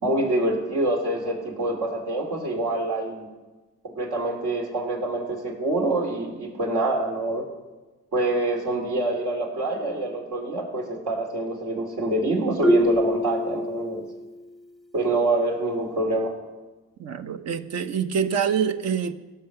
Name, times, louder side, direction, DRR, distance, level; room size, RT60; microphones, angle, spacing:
voice 1, 0.0-3.3 3.8-7.4 8.1-14.0 14.9-16.3, right 2 dB, 80° right, 0 dB, 3.0 m, -26 dB
Marimba xylophone, 12.6-14.4, left 1 dB, ahead, 0.4 m, -24 dB
voice 2, 17.0-19.1, right 7 dB, 60° right, 9 dB, 0.8 m, -25 dB
17.0 x 5.7 x 6.7 m, 1.2 s
cardioid pair, 90°, 30 cm